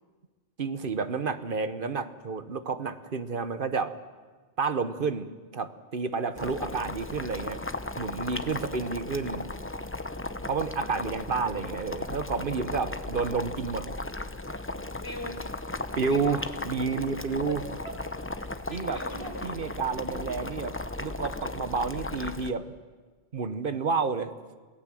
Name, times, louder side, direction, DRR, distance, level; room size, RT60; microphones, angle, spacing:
voice 1, 0.6-3.9 4.6-7.6 8.0-9.5 10.5-13.9 16.0-17.6 18.7-19.0 19.4-22.7 23.3-24.3, right 5 dB, 55° right, 11 dB, 1.2 m, -30 dB
Boiling, 6.4-22.5, left 2 dB, 15° left, 0.8 m, -36 dB
voice 2, 8.4-9.0 10.2-11.2 15.0-15.4 15.9-16.4 17.5-18.0 18.4-19.6 20.1-20.2, left 1 dB, 80° left, 2 dB, 4.4 m, -43 dB
27.5 x 18.0 x 7.6 m, 1.4 s
omnidirectional pair, 1.1 m